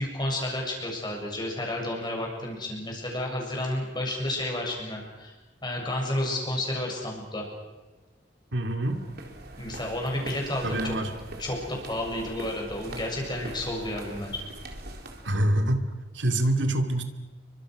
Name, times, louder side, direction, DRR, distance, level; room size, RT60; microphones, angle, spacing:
voice 1, 0.0-5.3 5.6-7.5 9.6-10.9 11.4-14.4, left 1 dB, 25° left, 0 dB, 7.2 m, -31 dB
voice 2, 8.5-9.0 10.6-11.1 15.2-15.9 16.1-17.0, right 1 dB, 80° right, 6 dB, 2.5 m, -25 dB
sound 1, 8.8-15.4, right 1 dB, 60° right, 4.0 m, -42 dB
30.0 x 24.5 x 6.3 m, 1.2 s
head